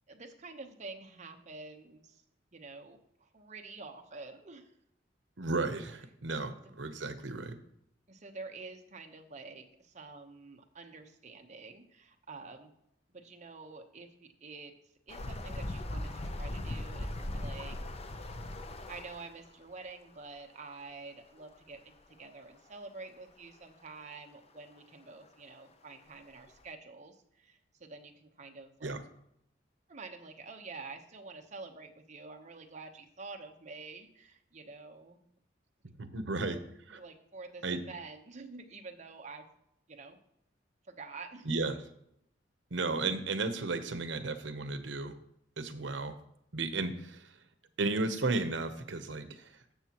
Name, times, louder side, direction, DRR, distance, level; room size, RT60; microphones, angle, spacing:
voice 1, 0.1-2.2 2.5-4.7 6.6-6.7 8.1-12.7 13.1-14.7 15.1-17.8 18.9-28.9 29.9-35.2 36.3-36.6 36.9-39.4 39.9-40.2 40.9-41.5, right 3 dB, 40° right, 4 dB, 1.0 m, -48 dB
voice 2, 5.4-7.6 28.8-29.0 36.0-36.6 36.9-37.0 37.6-37.8 41.4-41.8 42.7-45.2 45.6-46.2 46.5-47.4 47.8-49.6, right 3 dB, 80° right, 10 dB, 0.9 m, -34 dB
sound 1, 15.1-19.5 21.4-21.5 21.7-21.8 22.7-22.8 25.2-25.3 25.9-26.0 26.5-26.6, left 1 dB, 35° left, 0.6 m, -39 dB
13.0 x 7.3 x 3.0 m, 0.76 s
head